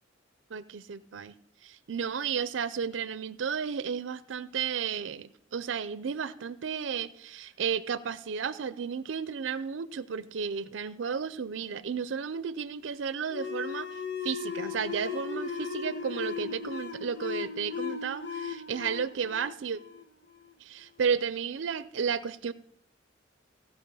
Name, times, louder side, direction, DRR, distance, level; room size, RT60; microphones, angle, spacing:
voice 1, 0.5-1.3 1.6-19.8 20.6-22.5, right 6 dB, 90° right, 15 dB, 0.5 m, -33 dB
sound 1, 13.3-20.5, left 6 dB, 65° left, 1.1 m, -37 dB
16.5 x 5.7 x 5.5 m, 0.69 s
head